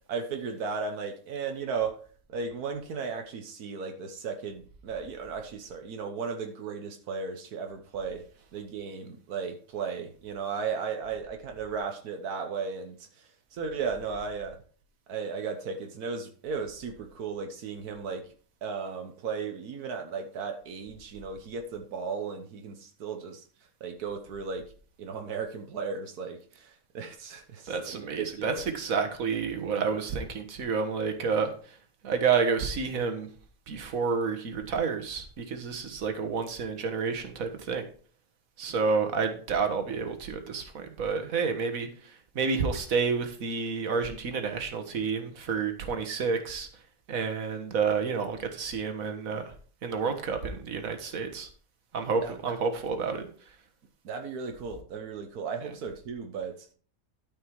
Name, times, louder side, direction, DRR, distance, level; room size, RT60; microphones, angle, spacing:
voice 1, 0.1-2.0 2.3-8.3 8.5-14.6 15.1-18.3 18.6-23.4 23.8-24.7 25.0-28.6 28.9-29.0 38.7-38.9 52.2-52.3 54.0-56.7, right 5 dB, 85° right, 1.5 m, -35 dB
voice 2, 27.7-31.5 32.0-33.3 33.7-37.8 38.6-46.7 47.1-49.5 49.8-51.5 51.9-53.3 55.6-55.7, right 5 dB, 65° right, 1.8 m, -29 dB
12.5 x 5.4 x 4.7 m
omnidirectional pair, 1.6 m